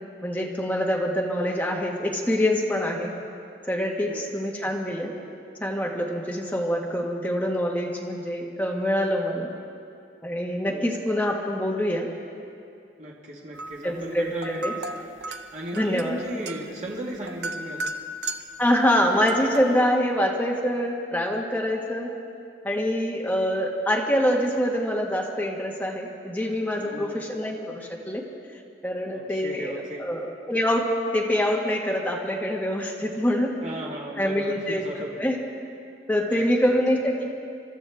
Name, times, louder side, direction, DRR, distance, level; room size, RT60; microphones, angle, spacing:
voice 1, 0.2-3.1 3.7-5.1 5.6-9.5 10.2-12.1 13.8-14.7 15.7-16.2 18.6-22.1 22.6-28.2 28.8-29.7 30.0-30.9 31.1-33.5 34.2-35.4 36.1-37.4, equal, 10° left, -2 dB, 1.7 m, -25 dB
voice 2, 13.0-14.8 15.5-17.9 26.7-27.2 29.1-30.0 33.6-35.2 36.3-36.4, right 1 dB, 40° right, -3 dB, 1.8 m, -36 dB
sound 1, 13.5-13.9 14.3-18.6 19.2-19.8, right 2 dB, 75° right, 0.8 m, -35 dB
27.5 x 13.0 x 3.6 m, 2.4 s
head